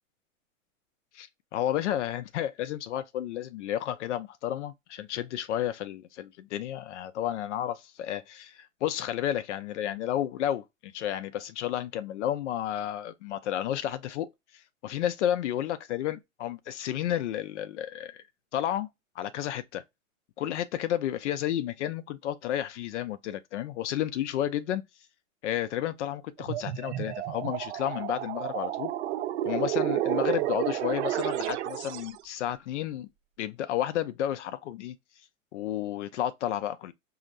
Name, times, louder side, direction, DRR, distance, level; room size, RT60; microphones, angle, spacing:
voice 1, 1.2-14.3 14.5-18.2 18.5-18.9 19.2-19.8 20.4-24.8 25.4-28.9 29.4-33.1 33.4-35.0 35.5-36.9, left 11 dB, 60° left, 0.6 m, -32 dB
sound 1, 26.4-32.2, right 13 dB, 60° right, 0.5 m, -31 dB
5.1 x 2.8 x 2.4 m
hypercardioid pair, 115°, 39 cm